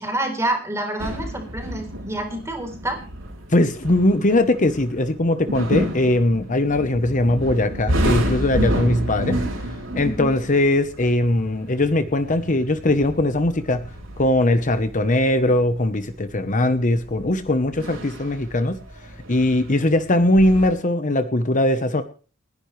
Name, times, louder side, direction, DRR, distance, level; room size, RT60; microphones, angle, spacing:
voice 1, 0.0-3.0 10.0-10.3, right 1 dB, 15° right, 3 dB, 3.8 m, -27 dB
sound 1, 1.0-20.7, right 1 dB, 75° right, 4.5 m, -30 dB
voice 2, 3.5-9.4 9.9-13.9 14.2-18.8 19.3-22.0, left 1 dB, 40° left, 9 dB, 1.0 m, -20 dB
29.5 x 10.5 x 3.3 m, 0.38 s
head